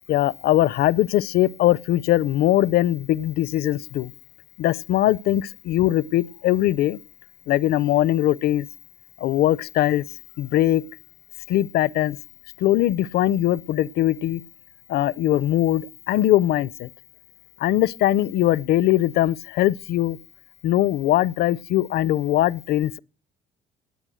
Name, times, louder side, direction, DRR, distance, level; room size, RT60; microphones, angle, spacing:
voice 1, 0.1-4.1 4.6-7.0 7.5-8.7 9.2-10.0 10.4-10.8 11.5-12.2 12.6-14.4 14.9-16.9 17.6-20.2 20.6-23.0, left 13 dB, 70° left, 0.6 m, -21 dB
18.5 x 8.7 x 6.3 m
cardioid pair, 110°, 17 cm